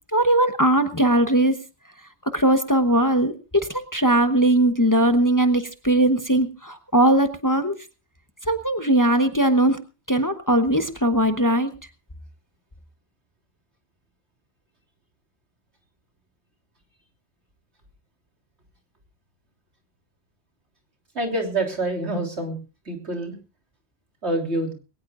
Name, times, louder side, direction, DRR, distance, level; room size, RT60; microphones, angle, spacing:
voice 1, 0.1-1.5 2.3-7.8 8.5-9.8 10.1-11.7, right 1 dB, 20° left, 7 dB, 1.0 m, -20 dB
voice 2, 21.2-22.6 22.9-23.4 24.2-24.7, right 2 dB, 80° right, 2 dB, 3.6 m, -26 dB
21.0 x 18.0 x 2.5 m, 0.32 s
omnidirectional pair, 1.1 m